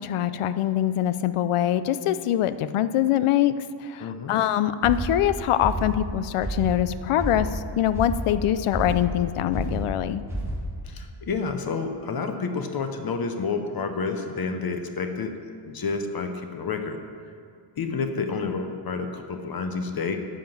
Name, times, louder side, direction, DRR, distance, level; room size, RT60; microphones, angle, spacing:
voice 1, 0.0-10.2, left 11 dB, 85° left, 13 dB, 0.6 m, -24 dB
voice 2, 4.0-4.4 10.8-15.3 15.7-17.0 17.8-20.2, left 4 dB, 45° left, 6 dB, 0.8 m, -29 dB
sound 1, 4.8-10.9, right 1 dB, 5° right, 1.7 m, -31 dB
10.0 x 5.9 x 7.1 m, 2.2 s
wide cardioid pair, 180°, 50 cm